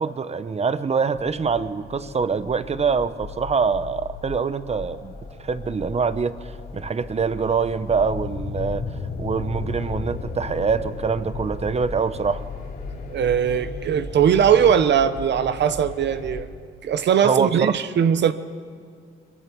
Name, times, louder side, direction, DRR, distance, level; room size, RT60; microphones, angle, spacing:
voice 1, 0.0-5.1 5.4-8.8 9.2-12.4 17.2-17.8, right 5 dB, 30° right, 1.0 m, -24 dB
sound 1, 1.1-16.4, left 4 dB, 50° left, 2.8 m, -35 dB
voice 2, 13.1-16.5 16.8-18.3, right 8 dB, 60° right, 0.9 m, -20 dB
23.0 x 22.5 x 6.2 m
cardioid pair, 90°, 20 cm